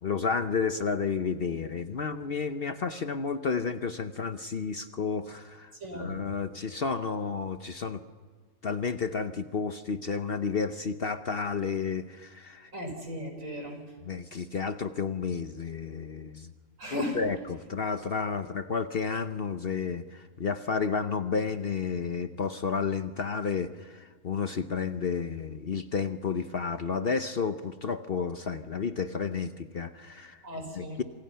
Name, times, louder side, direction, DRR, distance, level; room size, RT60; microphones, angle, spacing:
voice 1, 0.0-8.0 8.6-12.7 14.0-16.5 16.9-30.4 30.7-31.0, left 5 dB, 50° left, 10 dB, 0.9 m, -31 dB
voice 2, 5.8-6.2 12.7-13.8 16.8-17.2 30.4-31.0, equal, 65° right, 3 dB, 5.6 m, -36 dB
28.0 x 27.5 x 5.7 m, 1.5 s
omnidirectional pair, 1.5 m